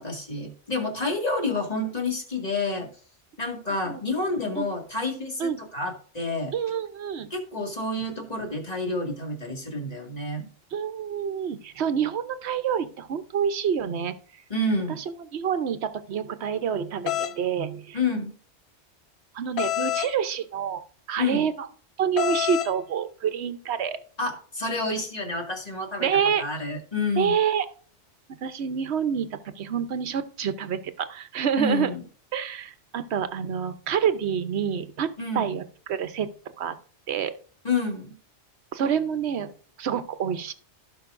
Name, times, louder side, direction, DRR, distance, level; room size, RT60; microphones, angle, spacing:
voice 1, 0.0-2.9 3.4-6.5 7.3-10.5 14.5-15.0 17.9-18.3 21.2-21.5 24.2-26.1 26.4-27.4 31.6-32.0 35.2-35.5 37.6-38.1, left 2 dB, 35° left, 1 dB, 2.2 m, -29 dB
voice 2, 6.5-7.3 10.7-14.1 15.3-18.0 19.3-20.8 21.1-21.7 22.0-24.0 26.0-26.4 27.2-27.7 28.4-31.9 32.3-35.1 35.3-36.3 36.6-36.7 37.1-37.3 38.7-39.5 39.8-40.5, right 7 dB, 65° right, 11 dB, 1.1 m, -27 dB
sound 1, 17.1-17.3 19.6-20.1 22.2-22.7, left 12 dB, 70° left, 0.8 m, -27 dB
16.5 x 5.6 x 2.5 m, 0.44 s
omnidirectional pair, 1.2 m